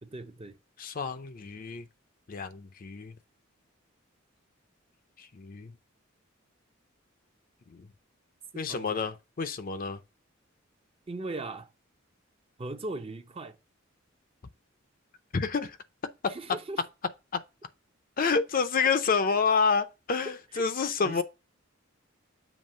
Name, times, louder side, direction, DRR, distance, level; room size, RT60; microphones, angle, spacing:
voice 1, 0.0-0.6 8.5-9.0 11.1-11.7 12.6-13.6 16.3-16.8 19.3-19.4 20.2-21.2, right 2 dB, 30° right, 0.6 m, -39 dB
voice 2, 0.8-1.9 2.3-3.1 5.2-5.7 7.7-7.9 8.5-10.0 15.3-15.8 16.2-16.3 17.3-17.4 18.2-21.2, left 5 dB, 45° left, 0.5 m, -28 dB
7.2 x 2.9 x 5.4 m
head